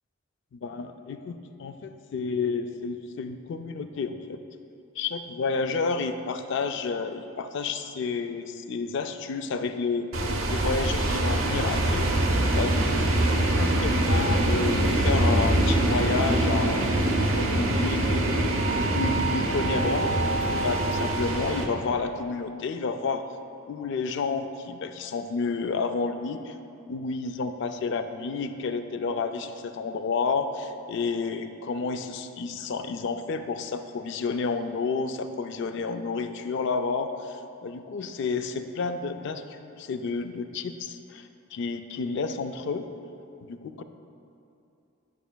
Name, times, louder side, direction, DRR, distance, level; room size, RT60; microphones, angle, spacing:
voice 1, 0.5-4.4 5.0-10.1 10.5-12.1 12.6-13.1 13.5-16.8 17.3-18.6 18.9-20.1 20.6-23.3 23.7-26.6 26.9-42.8 43.4-43.8, left 4 dB, 60° left, 8 dB, 0.3 m, -30 dB
sound 1, 10.1-21.7, right 1 dB, 75° right, 0.7 m, -24 dB
11.0 x 5.8 x 2.2 m, 2.7 s
head